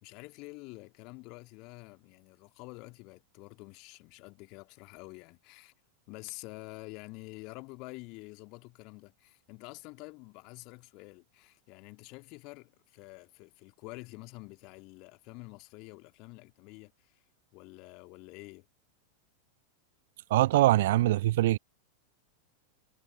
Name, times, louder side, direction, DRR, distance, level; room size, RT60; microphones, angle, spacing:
voice 1, 0.0-5.7 6.1-17.1 17.5-18.7, left 27 dB, 40° left, 2.5 m, -48 dB
voice 2, 20.3-21.6, right 15 dB, 55° right, 0.4 m, -23 dB
figure-of-eight pair, 90°, 0 cm